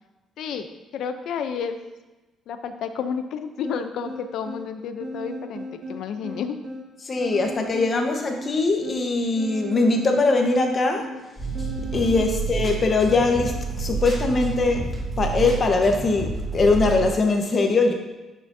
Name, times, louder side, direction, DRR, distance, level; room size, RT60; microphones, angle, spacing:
voice 1, 0.4-1.8 2.5-6.6 12.0-12.4, left 7 dB, 75° left, 9 dB, 0.6 m, -31 dB
sound 1, 3.6-12.3, right 1 dB, 70° right, 1.6 m, -37 dB
voice 2, 7.0-11.1 11.9-17.9, left 3 dB, 35° left, 3 dB, 1.1 m, -21 dB
sound 2, 11.4-17.1, right 4 dB, 15° left, 2.5 m, -29 dB
8.9 x 6.0 x 2.7 m, 1.1 s
cardioid pair, 110°, 0 cm